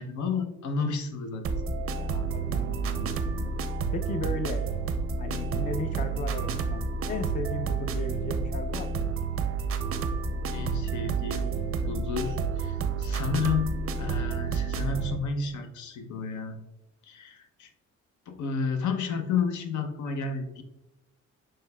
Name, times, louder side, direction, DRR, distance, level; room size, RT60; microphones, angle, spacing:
voice 1, 0.0-1.5 10.5-11.5 11.8-13.7 14.0-16.6 17.0-17.7 18.3-20.6, left 5 dB, 70° left, 6 dB, 0.7 m, -31 dB
sound 1, 1.4-15.2, right 5 dB, 50° right, 0.5 m, -30 dB
voice 2, 2.0-3.5 3.9-4.6 5.2-9.0, left 4 dB, 30° left, 9 dB, 0.4 m, -36 dB
6.4 x 3.1 x 2.2 m, 0.94 s
cardioid pair, 90°, 30 cm